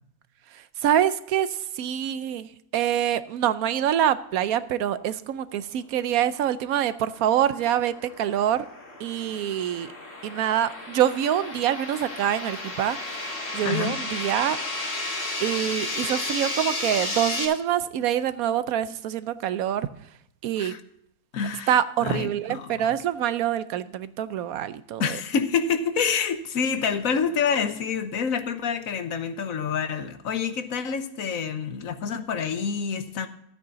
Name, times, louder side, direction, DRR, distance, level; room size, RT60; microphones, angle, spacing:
voice 1, 0.8-8.6 9.0-9.9 10.2-14.6 15.4-19.9 20.4-20.8 21.7-25.2, right 10 dB, 75° right, 1.1 m, -25 dB
sound 1, 7.0-17.5, left 2 dB, 45° left, 2.0 m, -33 dB
voice 2, 13.6-14.0 20.6-20.8 21.3-21.7 22.0-23.0 25.0-33.3, left 6 dB, 70° left, 1.3 m, -27 dB
13.0 x 8.7 x 3.9 m
omnidirectional pair, 1.5 m